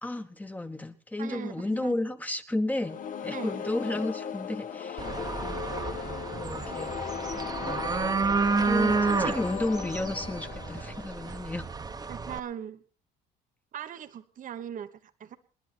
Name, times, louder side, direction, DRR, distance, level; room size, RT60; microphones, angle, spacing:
voice 1, 0.0-5.1 5.4-5.6 6.3-6.9 7.6-7.9 8.5-11.7, left 1 dB, 10° left, 1.3 m, -33 dB
voice 2, 1.2-2.0 3.3-3.6 12.1-12.8 13.7-15.4, right 9 dB, 50° right, 1.2 m, -40 dB
sound 1, 2.8-11.7, left 8 dB, 50° left, 1.4 m, -37 dB
sound 2, 5.0-12.4, right 4 dB, 25° right, 1.2 m, -30 dB
28.0 x 10.5 x 4.5 m
cardioid pair, 110°, 17 cm